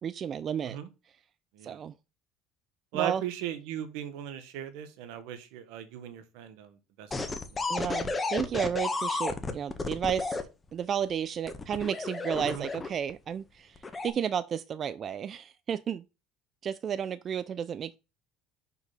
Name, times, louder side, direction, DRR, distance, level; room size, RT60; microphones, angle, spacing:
voice 1, 0.0-0.8 1.6-1.9 2.9-3.2 7.7-10.4 10.7-16.0 16.6-18.0, right 8 dB, 40° right, 0.4 m, -32 dB
voice 2, 2.9-7.6 12.4-12.6, right 11 dB, 80° right, 1.2 m, -38 dB
sound 1, 7.1-10.4 11.5-13.1 13.8-14.1, left 3 dB, 20° left, 1.0 m, -32 dB
5.9 x 3.9 x 5.6 m
supercardioid pair, 110°, 0 cm